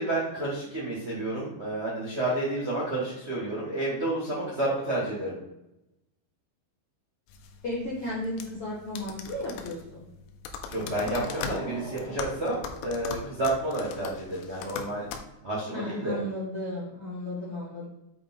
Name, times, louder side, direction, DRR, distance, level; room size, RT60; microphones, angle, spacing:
voice 1, 0.0-5.4 10.7-15.0 15.4-16.2, right 2 dB, 85° right, -6 dB, 0.6 m, -30 dB
sound 1, 7.3-15.2, left 6 dB, 85° left, 3.2 m, -40 dB
voice 2, 7.6-10.0 15.7-17.8, left 1 dB, 70° left, -6 dB, 1.4 m, -34 dB
sound 2, 10.7-13.1, left 1 dB, 35° left, 1.0 m, -41 dB
7.7 x 5.2 x 3.9 m, 0.91 s
omnidirectional pair, 5.5 m